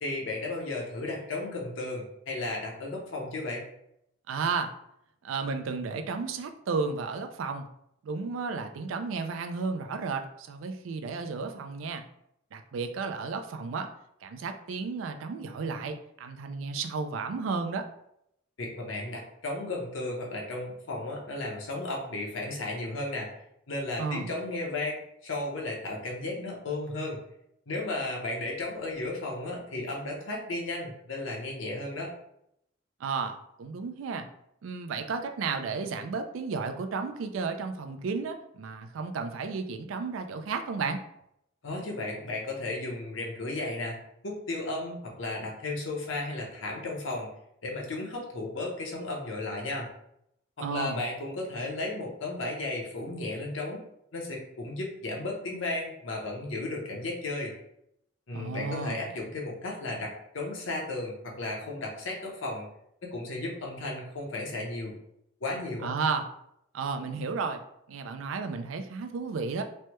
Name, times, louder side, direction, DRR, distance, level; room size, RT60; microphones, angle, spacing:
voice 1, 0.0-3.7 18.6-23.3 23.7-27.2 27.7-32.1 41.6-44.0 44.2-47.3 47.6-49.9 50.6-53.8 54.1-57.5 58.3-62.7 63.0-64.9 65.4-65.9, left 2 dB, 70° left, -1 dB, 0.8 m, -34 dB
voice 2, 4.3-4.7 5.2-7.7 8.0-12.0 12.5-13.9 14.2-17.9 24.0-24.3 33.0-34.3 34.6-41.0 50.6-51.0 58.3-59.0 65.8-66.3 66.7-67.6 67.9-69.6, right 4 dB, 85° right, 6 dB, 0.4 m, -33 dB
3.2 x 2.1 x 2.9 m, 0.77 s
head